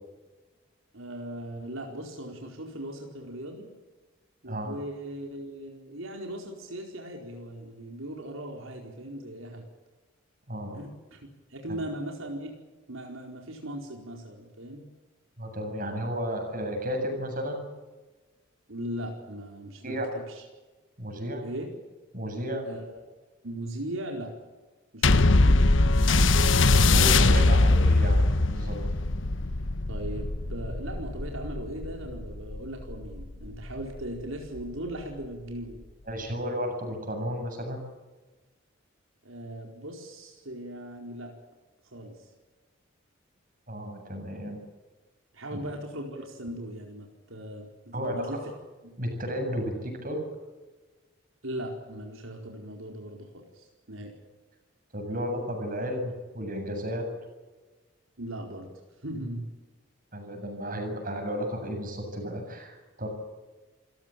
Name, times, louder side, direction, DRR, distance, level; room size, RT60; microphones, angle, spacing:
voice 1, 0.9-3.7 4.4-9.6 10.7-11.2 11.5-12.5 12.9-14.8 18.7-20.4 21.4-21.7 22.6-23.0 23.4-24.3 24.9-25.5 29.9-35.8 39.2-41.4 41.9-42.3 45.3-48.4 48.8-49.0 51.4-54.1 58.2-58.7 59.0-59.5, right 1 dB, 80° right, 1 dB, 4.6 m, -38 dB
voice 2, 10.5-10.8 15.4-17.7 19.8-20.1 21.0-21.4 22.1-22.6 26.7-28.2 28.5-28.8 36.1-37.8 43.7-44.6 45.5-45.6 47.9-48.2 49.0-50.2 54.9-57.1 60.1-63.1, equal, 40° right, 4 dB, 7.7 m, -33 dB
sound 1, 25.0-33.8 34.6-34.7, left 2 dB, 65° left, 1.2 m, -22 dB
28.0 x 16.5 x 8.9 m, 1.2 s
head